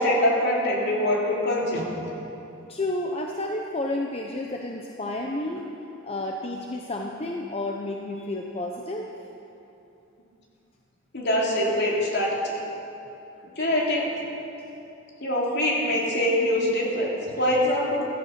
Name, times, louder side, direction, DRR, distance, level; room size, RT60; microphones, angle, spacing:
voice 1, 0.0-1.8 11.1-12.4 13.5-14.1 15.2-18.1, left 1 dB, 55° left, -3 dB, 3.1 m, -24 dB
voice 2, 2.7-5.7 6.0-9.1, left 2 dB, 30° left, 1 dB, 0.8 m, -31 dB
15.0 x 13.5 x 5.9 m, 2.9 s
head